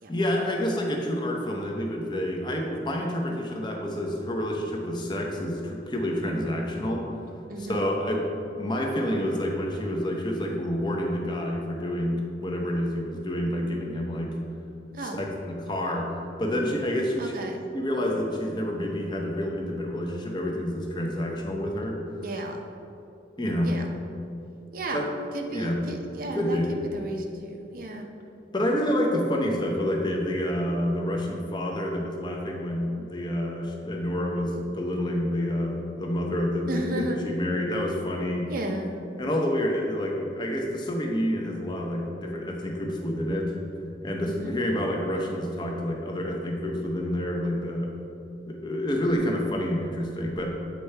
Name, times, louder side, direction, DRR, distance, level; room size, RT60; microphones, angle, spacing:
voice 1, 0.1-7.1 7.7-8.3 8.6-14.3 15.0-17.3 17.7-22.0 23.4-23.7 24.9-25.0 25.5-25.8 26.3-26.7 28.5-38.5 39.2-43.5 44.0-48.0 48.5-50.6, equal, 25° left, 0 dB, 0.7 m, -28 dB
voice 2, 7.5-7.8 14.9-15.2 17.2-17.6 22.2-22.7 23.6-23.9 24.7-25.1 25.3-28.1 36.7-37.2 38.5-38.9 44.2-44.6, right 1 dB, 50° right, 3 dB, 0.6 m, -34 dB
8.1 x 4.5 x 3.3 m, 2.8 s
head